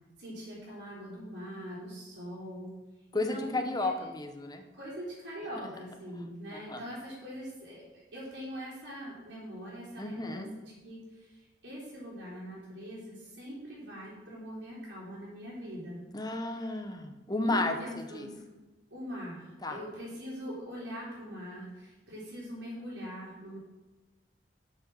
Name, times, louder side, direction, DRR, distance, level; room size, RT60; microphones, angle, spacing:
voice 1, 0.2-2.7 3.1-3.9 4.7-10.5 10.8-16.0 17.4-18.4 18.9-23.6, equal, 75° right, -10 dB, 3.5 m, -42 dB
voice 2, 3.1-4.6 6.5-6.8 10.0-10.5 16.1-18.3 19.6-19.8, left 2 dB, 20° left, 6 dB, 0.9 m, -33 dB
7.9 x 6.5 x 6.2 m, 1.1 s
head